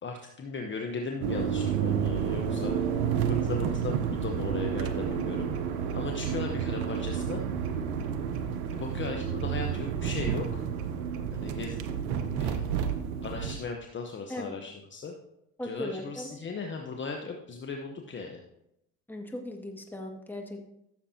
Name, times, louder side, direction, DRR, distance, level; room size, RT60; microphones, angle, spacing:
voice 1, 0.0-2.9 3.3-5.5 5.9-7.4 8.7-10.7 11.3-11.8 12.4-12.6 13.2-15.1 15.6-18.4, left 4 dB, 25° left, 2 dB, 1.1 m, -37 dB
sound 1, 1.2-13.6, right 8 dB, 75° right, 1.0 m, -30 dB
voice 2, 15.6-16.4 19.1-20.7, left 1 dB, 5° left, 1 dB, 2.0 m, -38 dB
15.0 x 7.2 x 2.9 m, 0.81 s
hypercardioid pair, 80°, 42 cm